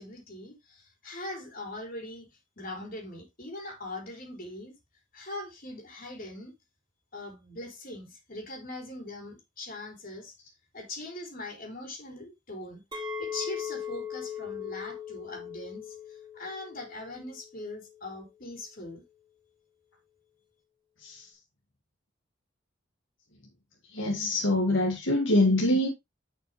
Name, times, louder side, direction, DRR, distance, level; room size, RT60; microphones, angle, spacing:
voice 1, 0.0-2.3 2.6-4.8 5.1-6.5 7.1-10.3 10.7-12.8 13.2-19.0, left 2 dB, 50° left, 3.9 m, -41 dB
Chink clink, 12.9-18.1, left 7 dB, 25° right, 2.6 m, -39 dB
voice 2, 23.9-25.9, left 1 dB, 75° left, 2.0 m, -24 dB
9.7 x 6.1 x 3.2 m
head